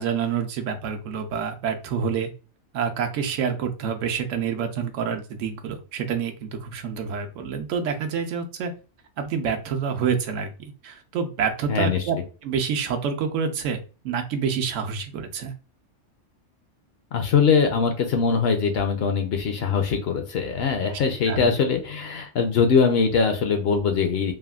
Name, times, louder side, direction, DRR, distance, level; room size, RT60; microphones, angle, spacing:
voice 1, 0.0-2.3 2.7-8.7 9.2-10.5 10.8-12.2 12.4-15.5 20.9-21.0 21.3-21.5, right 6 dB, 80° right, 5 dB, 1.0 m, -27 dB
voice 2, 11.7-12.0 17.1-24.3, left 5 dB, 65° left, 5 dB, 0.7 m, -22 dB
3.3 x 2.1 x 2.3 m, 0.35 s
omnidirectional pair, 1.3 m